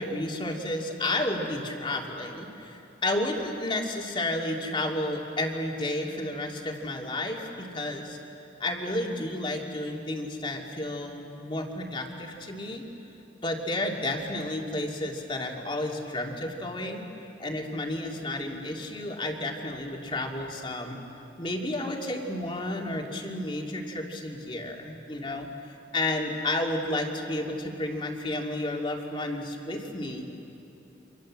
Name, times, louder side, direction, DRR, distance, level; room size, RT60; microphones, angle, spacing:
voice 1, 0.0-8.2 8.6-12.8 13.4-17.1 17.4-21.0 21.4-25.5 25.9-30.2, left 1 dB, 25° left, 1 dB, 2.7 m, -31 dB
29.0 x 26.5 x 7.6 m, 2.9 s
head